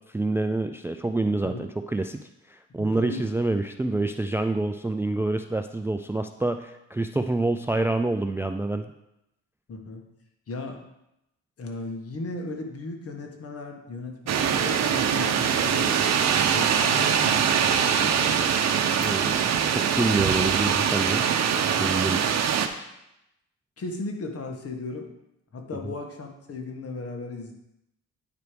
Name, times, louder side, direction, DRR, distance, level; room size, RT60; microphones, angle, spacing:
voice 1, 0.1-8.9 19.0-21.2 21.7-22.2 25.8-25.9, right 2 dB, 10° right, 7 dB, 0.4 m, -27 dB
voice 2, 2.8-3.3 9.7-10.0 10.5-10.8 11.6-16.0 16.5-18.4 22.1-22.5 23.8-25.1 25.5-27.5, left 3 dB, 50° left, 3 dB, 1.6 m, -36 dB
sound 1, 14.3-22.7, right 8 dB, 60° right, 0.8 m, -23 dB
9.4 x 4.6 x 5.1 m, 0.86 s
cardioid pair, 90°, 30 cm